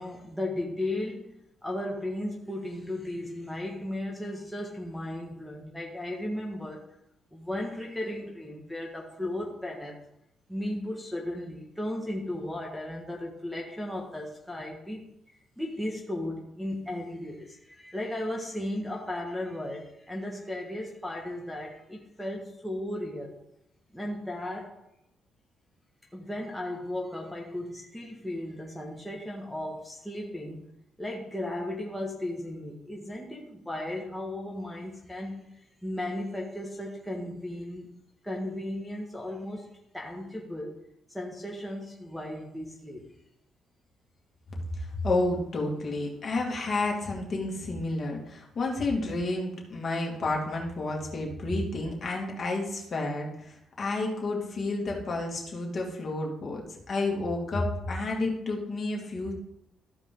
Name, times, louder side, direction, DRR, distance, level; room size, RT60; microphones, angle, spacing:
voice 1, 0.0-6.8 7.3-10.0 10.5-15.1 15.6-23.4 23.9-24.8 26.1-30.7 31.0-37.9 38.2-40.8 41.1-43.1, left 1 dB, 5° left, -2 dB, 1.6 m, -35 dB
voice 2, 44.7-59.3, left 2 dB, 45° left, -1 dB, 2.4 m, -30 dB
14.0 x 4.8 x 3.9 m, 0.79 s
cardioid pair, 90°, 0 cm